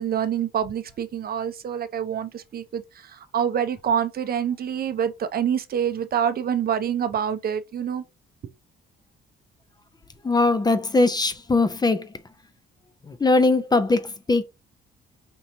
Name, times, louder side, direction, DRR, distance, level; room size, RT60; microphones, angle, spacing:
voice 1, 0.0-8.0, right 8 dB, 50° right, 0.5 m, -26 dB
voice 2, 10.2-12.1 13.1-14.4, left 3 dB, 20° left, 0.6 m, -21 dB
5.2 x 2.9 x 2.7 m
cardioid pair, 90°, 20 cm